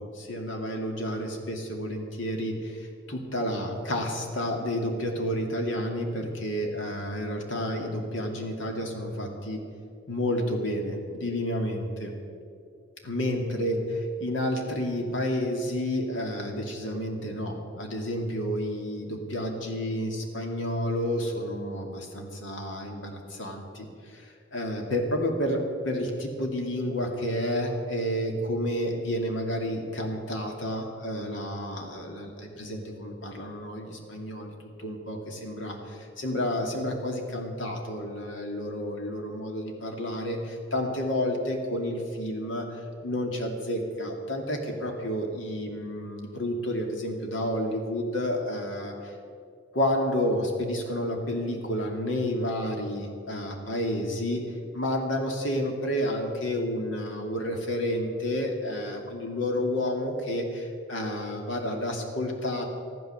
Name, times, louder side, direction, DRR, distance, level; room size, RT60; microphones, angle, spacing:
voice 1, 0.0-9.6 10.1-12.1 13.0-13.8 14.2-34.5 34.8-49.1 49.7-54.4 54.7-62.6, left 1 dB, 85° left, 2 dB, 2.5 m, -30 dB
14.0 x 12.0 x 7.0 m, 2.5 s
head